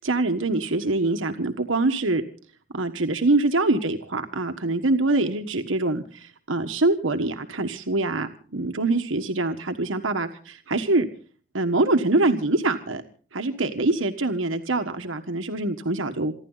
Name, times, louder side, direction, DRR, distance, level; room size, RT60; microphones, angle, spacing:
voice 1, 0.0-2.2 2.7-11.1 11.5-13.0 13.3-16.3, right 2 dB, 90° right, 7 dB, 1.4 m, -24 dB
28.5 x 11.5 x 4.0 m, 0.42 s
head